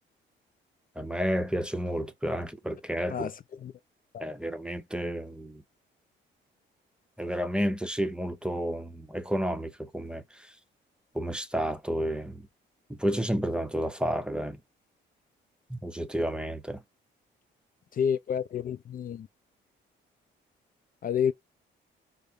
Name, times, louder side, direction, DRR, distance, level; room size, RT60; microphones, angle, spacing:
voice 1, 1.0-3.3 4.2-5.6 7.2-10.5 11.1-12.5 12.9-14.6 15.7-16.8, equal, 5° right, 0.7 m, -31 dB
voice 2, 17.9-19.3 21.0-21.3, left 8 dB, 45° left, 0.5 m, -29 dB
4.8 x 2.0 x 2.7 m
cardioid pair, 90°, 20 cm